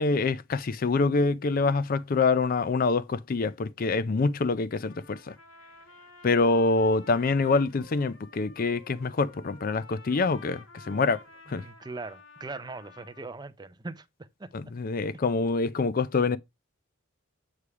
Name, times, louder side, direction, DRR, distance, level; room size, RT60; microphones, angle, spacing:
voice 1, 0.0-5.3 6.2-11.2 11.5-11.6 14.5-16.4, left 3 dB, 40° left, 0.4 m, -25 dB
Trumpet, 4.9-13.3, left 3 dB, 65° left, 1.3 m, -52 dB
voice 2, 11.5-14.5, right 3 dB, 20° right, 0.5 m, -40 dB
8.3 x 3.2 x 4.8 m
head